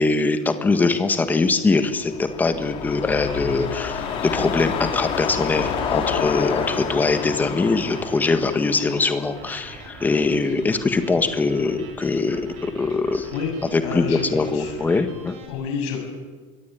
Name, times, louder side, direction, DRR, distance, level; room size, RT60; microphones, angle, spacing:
voice 1, 0.0-13.3 13.6-15.3, left 3 dB, 10° left, 9 dB, 1.6 m, -22 dB
sound 1, 1.8-10.2 10.6-10.7, left 7 dB, 35° left, 3.5 m, -29 dB
sound 2, 3.1-15.5, right 4 dB, 45° right, 6.6 m, -43 dB
voice 2, 13.8-14.2 14.5-14.7 15.5-16.0, left 6 dB, 80° left, 3 dB, 7.6 m, -28 dB
24.5 x 22.5 x 9.3 m, 1.4 s
cardioid pair, 180°, 15 cm